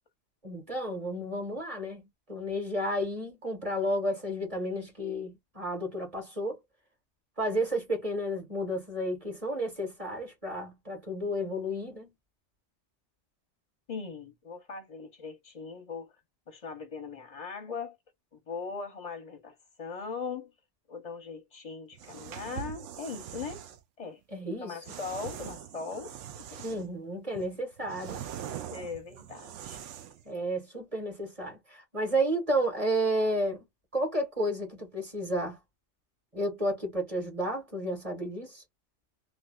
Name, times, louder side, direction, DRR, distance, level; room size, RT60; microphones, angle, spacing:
voice 1, 0.4-2.0 2.3-6.6 7.4-12.1 24.3-24.8 26.6-28.2 30.2-33.6 33.9-35.6 36.3-38.6, equal, 30° right, 1.3 m, -32 dB
voice 2, 13.9-16.1 16.5-18.0 18.5-20.5 20.9-23.6 24.0-24.2 24.6-26.8 28.7-29.8, left 5 dB, 40° left, 0.6 m, -40 dB
sound 1, 21.9-23.8 24.9-26.9 27.3-30.2, right 10 dB, 85° right, 0.9 m, -42 dB
3.4 x 2.4 x 2.3 m
omnidirectional pair, 1.2 m